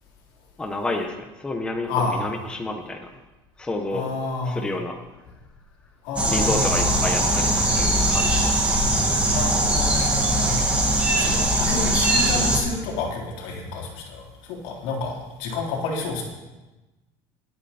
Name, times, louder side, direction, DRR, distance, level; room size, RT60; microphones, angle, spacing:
voice 1, 0.6-3.1 3.6-4.1 4.4-5.0 6.3-8.5, left 2 dB, 10° left, 3 dB, 1.0 m, -29 dB
voice 2, 1.9-2.3 3.9-4.7 6.0-7.0 9.3-10.6 11.2-14.2 14.5-16.2, left 4 dB, 80° left, -1 dB, 3.7 m, -29 dB
sound 1, 6.2-12.6, right 1 dB, 10° right, 2.0 m, -21 dB
21.0 x 8.9 x 4.3 m, 1.1 s
cardioid pair, 175°, 11 cm